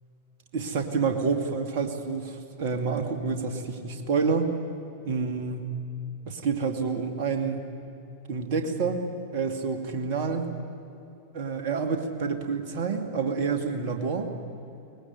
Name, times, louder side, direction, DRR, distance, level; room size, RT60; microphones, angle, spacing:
voice 1, 0.5-4.5 5.0-5.7 6.3-7.7 8.3-9.0 9.3-10.5 11.3-14.3, right 5 dB, 50° right, 5 dB, 2.6 m, -28 dB
23.5 x 20.0 x 9.5 m, 2.8 s
figure-of-eight pair, 90°, 0 cm